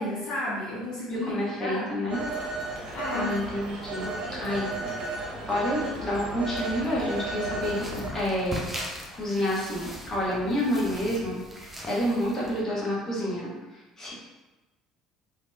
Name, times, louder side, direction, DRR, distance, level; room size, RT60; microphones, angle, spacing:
voice 1, 0.0-1.9 2.9-3.3, left 1 dB, 50° left, -8 dB, 0.8 m, -32 dB
voice 2, 1.1-2.2 3.1-4.1 4.4-8.8 9.1-13.5 14.0-14.1, equal, 20° left, -6 dB, 1.1 m, -29 dB
Telephone, 2.1-8.1, right 3 dB, 50° right, 0.6 m, -34 dB
sound 1, 7.6-12.6, equal, 10° right, 0.6 m, -39 dB
3.2 x 2.1 x 2.5 m, 1.1 s
figure-of-eight pair, 60°, 2 cm